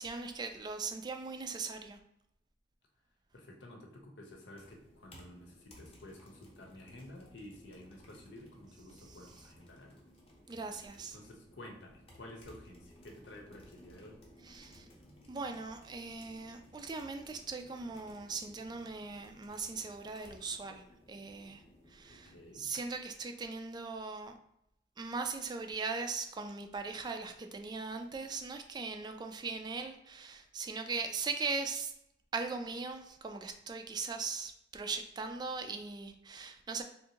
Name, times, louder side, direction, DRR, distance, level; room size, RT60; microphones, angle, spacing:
voice 1, 0.0-2.0 9.1-9.2 10.5-11.2 14.4-14.8 15.3-21.6 21.9-24.3 25.0-31.9 32.3-36.8, right 4 dB, 25° right, 6 dB, 0.3 m, -39 dB
voice 2, 3.3-10.0 11.1-14.2 22.3-22.6, left 1 dB, 85° left, 2 dB, 0.8 m, -52 dB
sound 1, 4.5-22.9, left 1 dB, 35° left, 0.8 m, -59 dB
3.5 x 2.6 x 2.9 m, 0.78 s
head